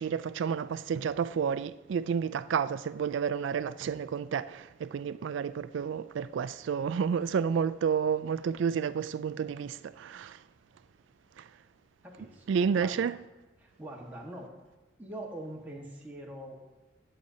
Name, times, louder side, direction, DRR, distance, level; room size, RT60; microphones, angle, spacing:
voice 1, 0.0-10.4 11.4-11.5 12.5-13.2, right 7 dB, 75° right, 0.3 m, -30 dB
voice 2, 12.0-13.1 13.6-14.5 15.0-16.6, right 1 dB, 10° right, 1.4 m, -43 dB
11.5 x 7.7 x 2.7 m
head